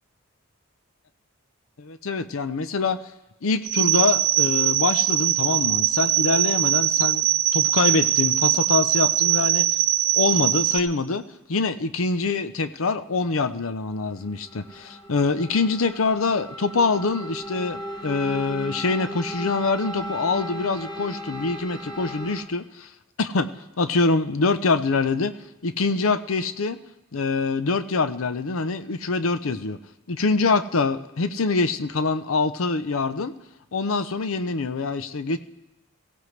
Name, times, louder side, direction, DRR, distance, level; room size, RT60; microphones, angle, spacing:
voice 1, 1.8-3.1 3.4-7.3 7.5-9.7 10.1-11.2 11.5-22.9 23.2-23.5 23.8-25.3 25.6-26.8 27.1-29.8 30.1-33.3 33.7-35.4, left 3 dB, 75° left, 11 dB, 0.7 m, -24 dB
sound 1, 3.6-10.8, right 13 dB, 50° right, 0.9 m, -21 dB
sound 2, 13.9-22.4, equal, 20° left, 1.2 m, -36 dB
21.0 x 16.0 x 3.3 m, 1.0 s
head